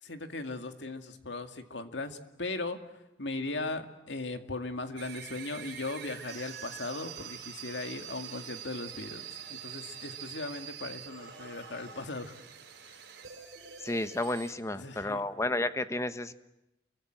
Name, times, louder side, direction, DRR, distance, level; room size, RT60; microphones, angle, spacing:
voice 1, 0.0-9.2 9.5-12.4 12.9-13.0 14.7-15.2, left 2 dB, 75° left, 7 dB, 2.2 m, -38 dB
sound 1, 5.0-14.5, right 8 dB, 60° right, 5.2 m, -45 dB
voice 2, 13.8-16.3, left 2 dB, 15° left, 12 dB, 1.0 m, -32 dB
29.0 x 24.0 x 7.7 m, 0.94 s
head